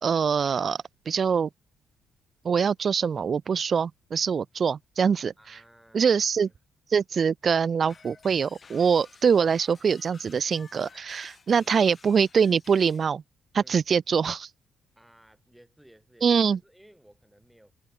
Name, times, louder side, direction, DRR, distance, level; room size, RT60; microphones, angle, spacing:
voice 1, 0.0-0.8 1.1-1.5 2.4-5.3 5.9-6.5 6.9-13.2 13.5-14.5 16.2-16.6, right 6 dB, 45° right, 0.6 m, -24 dB
voice 2, 5.4-6.5 13.5-13.8 15.0-17.7, right 1 dB, 5° right, 6.0 m, -57 dB
sound 1, 7.9-13.1, left 5 dB, 40° left, 3.5 m, -54 dB
cardioid pair, 90°, 0 cm